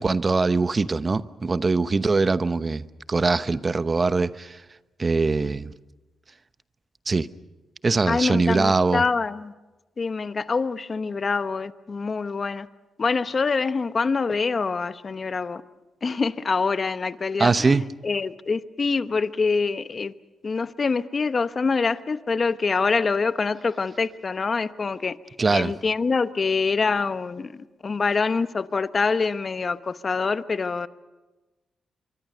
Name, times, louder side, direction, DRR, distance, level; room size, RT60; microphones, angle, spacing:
voice 1, 0.0-4.6 5.0-5.7 7.1-7.3 7.8-9.0 17.4-17.9 25.4-25.7, right 3 dB, 35° right, 0.9 m, -22 dB
voice 2, 8.1-9.5 10.0-12.7 13.0-15.6 16.0-20.1 20.4-25.2 25.5-27.6 27.8-30.9, left 4 dB, 40° left, 1.0 m, -25 dB
25.5 x 23.5 x 6.7 m
cardioid pair, 75°, 0 cm